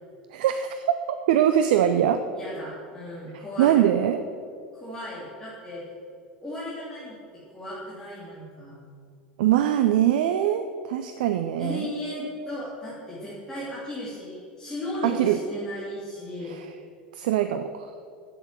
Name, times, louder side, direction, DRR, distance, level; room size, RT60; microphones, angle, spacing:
voice 1, 0.3-2.2 3.6-4.2 9.4-11.9 15.0-15.4 16.5-16.7 17.1-17.9, right 11 dB, 60° right, 9 dB, 0.5 m, -22 dB
voice 2, 2.3-3.8 4.7-5.8 6.4-7.2 7.5-8.8 11.6-16.5, left 1 dB, 10° left, -9 dB, 3.1 m, -36 dB
7.9 x 7.8 x 7.6 m, 2.3 s
figure-of-eight pair, 80°, 5 cm